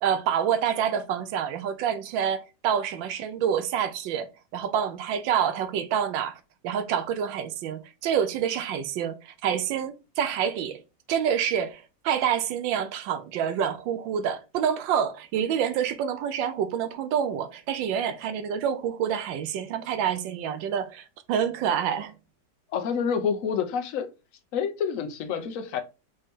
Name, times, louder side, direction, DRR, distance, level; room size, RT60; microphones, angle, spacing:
voice 1, 0.0-10.8 11.1-22.1, right 8 dB, 90° right, 1.4 m, -27 dB
voice 2, 22.7-24.1 24.5-25.8, left 7 dB, 60° left, 1.0 m, -28 dB
5.2 x 2.8 x 3.6 m
omnidirectional pair, 2.0 m